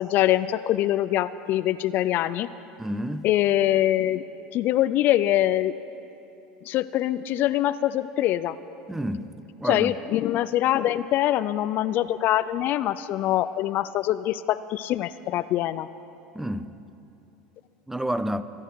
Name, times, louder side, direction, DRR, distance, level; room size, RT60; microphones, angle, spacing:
voice 1, 0.0-2.5 3.2-4.2 4.5-5.7 6.7-8.6 9.6-15.9, left 13 dB, 55° left, 14 dB, 0.4 m, -24 dB
voice 2, 2.8-3.3 8.9-9.3 9.6-9.9 16.3-16.7 17.9-18.4, right 1 dB, 5° right, 13 dB, 0.5 m, -29 dB
22.0 x 9.8 x 4.6 m, 2.8 s
supercardioid pair, 95°, 4 cm